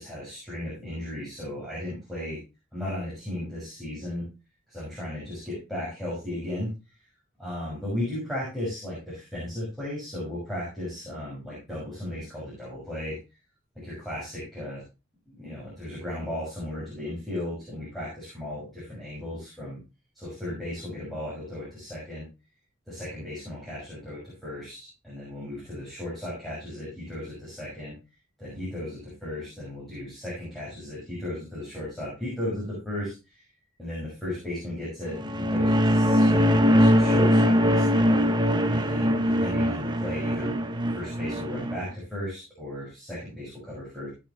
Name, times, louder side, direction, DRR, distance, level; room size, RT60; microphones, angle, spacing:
voice 1, 0.0-2.4 2.7-4.3 4.7-6.7 7.4-13.1 13.7-14.8 15.3-19.8 20.1-22.3 22.9-27.9 28.4-33.4 33.8-38.2 38.7-40.6 40.9-44.1, left 1 dB, ahead, -8 dB, 6.4 m, -35 dB
sound 1, 35.1-41.8, equal, 20° right, 0.9 m, -22 dB
16.5 x 7.1 x 3.2 m, 0.28 s
head